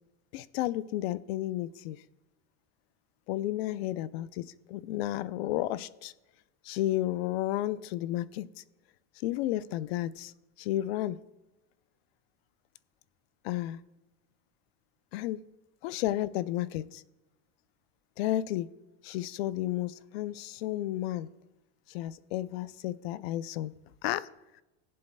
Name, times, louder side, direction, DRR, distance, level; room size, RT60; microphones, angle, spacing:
voice 1, 0.3-2.0 3.3-6.1 6.6-8.4 9.2-10.3 10.6-11.2 13.4-13.8 15.1-15.4 15.8-17.0 18.2-18.7 19.0-21.3 21.9-23.7 24.0-24.3, left 14 dB, 65° left, 17 dB, 0.5 m, -32 dB
21.0 x 7.5 x 2.2 m, 1.0 s
supercardioid pair, 175°, 34 cm